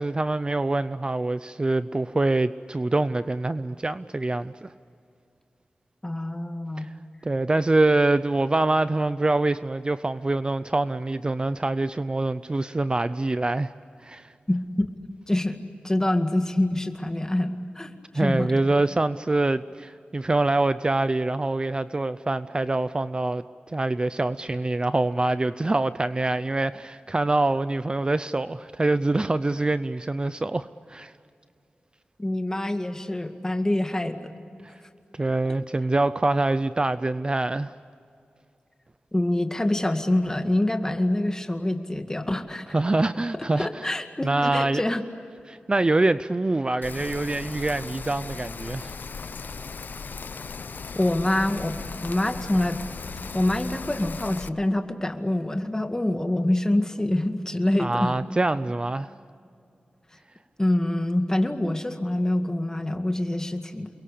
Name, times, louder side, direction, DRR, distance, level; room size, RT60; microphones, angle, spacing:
voice 1, 0.0-4.7 6.8-6.9 7.2-13.7 14.0-14.3 18.1-31.1 35.1-37.7 42.7-43.9 44.2-44.8 45.5-48.9 57.8-59.1, right 2 dB, 30° right, 13 dB, 0.6 m, -25 dB
voice 2, 6.0-6.9 14.5-14.9 15.3-15.6 15.8-18.6 32.2-34.3 39.1-42.8 43.6-45.0 51.0-52.8 53.3-58.2 60.6-63.9, left 1 dB, 20° left, 6 dB, 2.1 m, -26 dB
Rain, 46.8-54.5, left 5 dB, 70° left, 0.8 m, -37 dB
29.0 x 23.0 x 8.5 m, 2.5 s
wide cardioid pair, 95°, 3 cm